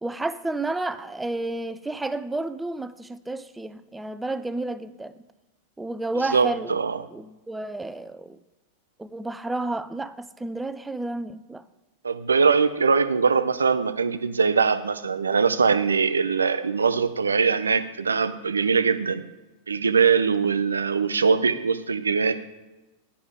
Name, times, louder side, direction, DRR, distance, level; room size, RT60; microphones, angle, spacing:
voice 1, 0.0-5.2 5.8-6.8 7.1-8.4 9.0-11.6, right 2 dB, 10° right, 0.4 m, -31 dB
voice 2, 6.3-7.0 12.0-19.2 19.7-22.3, right 5 dB, 75° right, 0.5 m, -22 dB
9.7 x 5.4 x 5.0 m
figure-of-eight pair, 90°, 0 cm